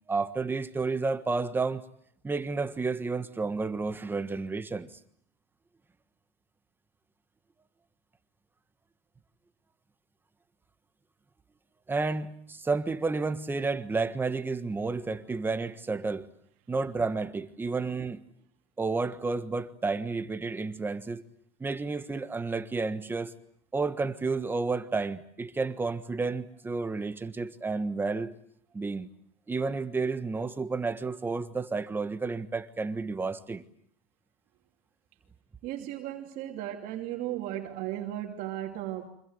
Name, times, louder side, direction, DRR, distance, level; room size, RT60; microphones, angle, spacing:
voice 1, 0.1-1.8 2.2-5.0 11.9-16.3 16.7-18.2 18.8-21.2 21.6-23.3 23.7-28.3 28.7-29.1 29.5-33.6, right 4 dB, 10° right, 1.5 m, -31 dB
voice 2, 35.6-39.1, right 13 dB, 55° right, 2.9 m, -35 dB
29.0 x 25.5 x 8.0 m
supercardioid pair, 140°, 17 cm